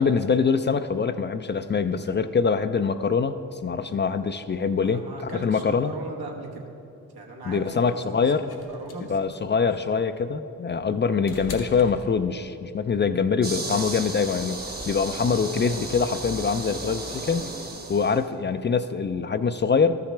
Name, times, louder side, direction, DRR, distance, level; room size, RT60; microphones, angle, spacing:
voice 1, 0.0-5.9 7.4-8.5 9.0-17.4 17.9-20.0, left 5 dB, 30° left, 10 dB, 0.4 m, -24 dB
voice 2, 4.8-6.6 7.1-9.1, right 2 dB, 80° right, 0 dB, 1.3 m, -39 dB
sound 1, 8.5-12.7 14.0-14.1, left 4 dB, 75° left, 1.1 m, -42 dB
sound 2, 13.4-18.2, right 2 dB, 25° right, 1.0 m, -34 dB
13.0 x 5.9 x 3.3 m, 2.8 s
supercardioid pair, 45°, 37 cm